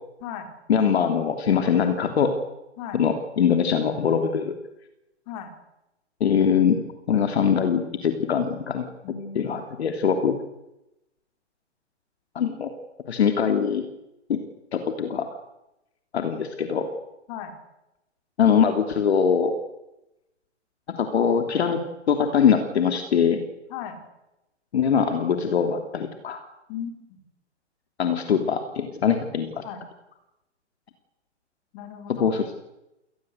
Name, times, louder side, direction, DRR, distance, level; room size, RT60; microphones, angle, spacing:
voice 1, 0.7-2.3 2.9-4.5 6.2-6.8 7.1-8.8 9.3-10.4 12.3-12.7 13.1-13.9 14.3-14.4 14.7-15.4 16.1-16.9 18.4-19.5 20.9-21.8 22.1-23.4 24.7-26.4 28.0-29.6 32.1-32.5, left 7 dB, 60° left, 6 dB, 3.1 m, -22 dB
voice 2, 9.0-9.5 17.3-17.5 23.7-24.0 26.7-27.2 29.6-29.8 31.7-32.3, left 8 dB, 35° left, 6 dB, 5.2 m, -36 dB
29.0 x 20.0 x 8.1 m, 0.91 s
figure-of-eight pair, 120°, 36 cm